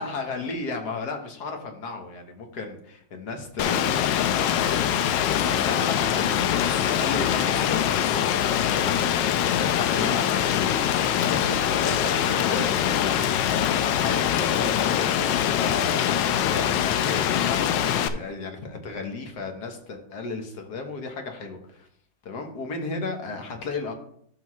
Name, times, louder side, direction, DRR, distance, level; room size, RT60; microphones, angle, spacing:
voice 1, 0.0-8.2 8.6-13.6 13.9-21.9 22.2-23.9, left 3 dB, 65° left, 4 dB, 1.8 m, -34 dB
Rain, 3.6-18.1, left 10 dB, 85° left, 1.3 m, -23 dB
12.0 x 5.9 x 3.1 m, 0.66 s
omnidirectional pair, 1.9 m